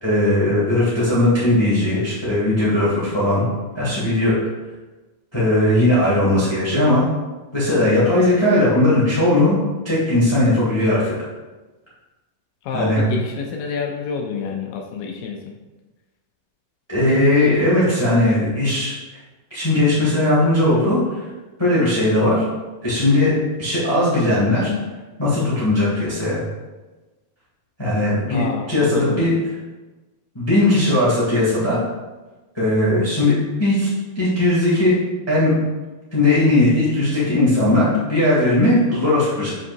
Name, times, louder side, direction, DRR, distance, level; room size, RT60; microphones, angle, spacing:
voice 1, 0.0-3.4 3.7-4.3 5.3-7.0 7.5-9.6 9.8-11.1 12.7-13.0 16.9-18.9 19.5-21.0 21.6-22.4 22.8-23.3 23.6-24.7 25.2-26.4 27.8-29.3 30.3-31.8 32.5-33.3 33.6-33.9 34.1-35.0 35.3-35.5 36.1-39.5, left 1 dB, 20° left, -8 dB, 0.7 m, -18 dB
voice 2, 12.6-15.5 28.3-29.3, left 5 dB, 80° left, 2 dB, 2.1 m, -28 dB
7.1 x 5.4 x 2.6 m, 1.2 s
omnidirectional pair, 4.3 m